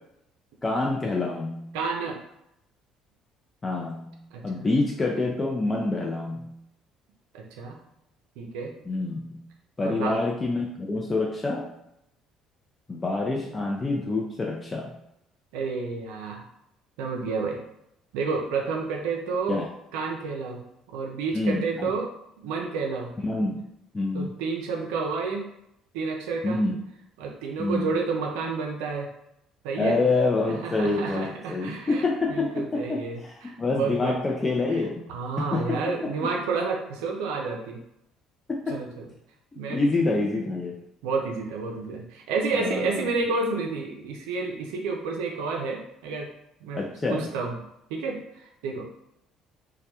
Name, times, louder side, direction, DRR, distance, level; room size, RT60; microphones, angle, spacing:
voice 1, 0.6-1.7 3.6-6.5 8.9-9.4 9.8-11.7 12.9-14.9 19.5-19.7 21.3-21.9 23.2-23.6 23.9-24.3 26.4-26.8 27.6-27.9 29.8-35.1 35.4-36.3 38.5-38.8 39.7-40.8 42.5-43.1 46.7-47.4, left 3 dB, 25° left, -1 dB, 0.4 m, -27 dB
voice 2, 1.7-2.2 4.3-4.7 7.3-7.8 8.4-8.7 9.8-10.2 15.5-16.4 17.0-17.6 18.1-19.6 19.9-20.6 20.9-22.1 22.4-23.1 24.1-25.4 25.9-26.6 27.2-29.1 29.6-30.0 30.6-34.1 34.7-34.8 35.1-37.8 38.7-39.1 39.6-39.9 41.0-46.3 46.6-46.8 47.1-47.5 47.9-48.9, right 4 dB, 80° right, 1 dB, 0.4 m, -30 dB
2.2 x 2.1 x 2.8 m, 0.81 s
hypercardioid pair, 65°, 0 cm